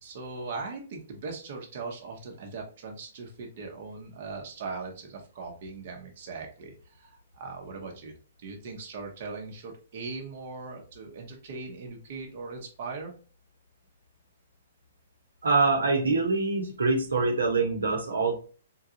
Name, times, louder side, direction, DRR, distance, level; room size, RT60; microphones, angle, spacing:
voice 1, 0.0-8.1 8.4-13.1, right 4 dB, 50° right, 1 dB, 0.9 m, -39 dB
voice 2, 15.4-18.3, right 3 dB, 85° right, 2 dB, 0.9 m, -24 dB
3.8 x 2.4 x 2.8 m, 0.38 s
hypercardioid pair, 130°, 0 cm